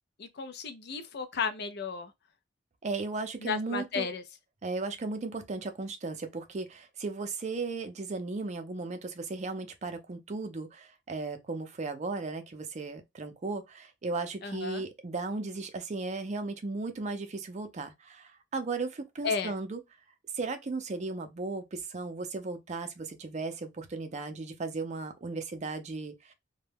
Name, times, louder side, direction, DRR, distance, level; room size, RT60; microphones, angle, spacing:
voice 1, 0.2-2.1 3.4-4.2 14.4-14.8 19.2-19.5, left 5 dB, 60° left, 0.5 m, -33 dB
voice 2, 2.8-4.1 4.6-19.8 20.3-26.3, right 3 dB, 40° right, 0.5 m, -36 dB
2.2 x 2.1 x 3.3 m
head